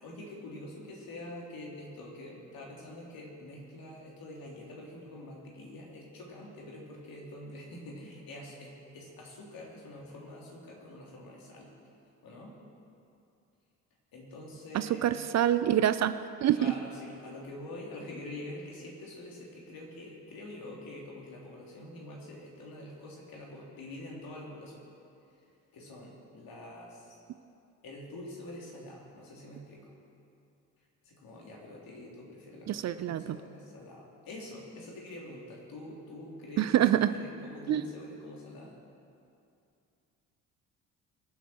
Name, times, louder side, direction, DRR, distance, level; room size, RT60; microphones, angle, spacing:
voice 1, 0.0-11.7 12.2-12.5 14.1-15.0 16.5-24.8 25.7-27.2 27.8-29.9 31.0-38.7, left 1 dB, 55° left, -2 dB, 3.5 m, -46 dB
voice 2, 14.7-16.7 32.7-33.4 36.6-37.1 37.7-37.8, right 11 dB, 40° right, 13 dB, 0.5 m, -26 dB
24.0 x 8.0 x 4.6 m, 2.6 s
figure-of-eight pair, 45°, 42 cm